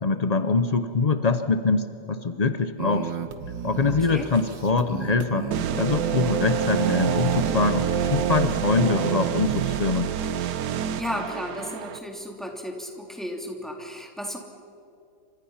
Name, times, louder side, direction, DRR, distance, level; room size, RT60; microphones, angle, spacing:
voice 1, 0.0-3.1 3.6-5.5 5.7-10.1, left 4 dB, 65° left, 9 dB, 0.4 m, -24 dB
sound 1, 2.8-9.8, right 8 dB, 80° right, 2.0 m, -29 dB
voice 2, 3.9-4.3 11.0-14.4, equal, ahead, 1 dB, 3.1 m, -34 dB
sound 2, 5.5-12.0, right 9 dB, 65° right, 1.4 m, -29 dB
29.5 x 26.0 x 5.7 m, 2.6 s
omnidirectional pair, 2.0 m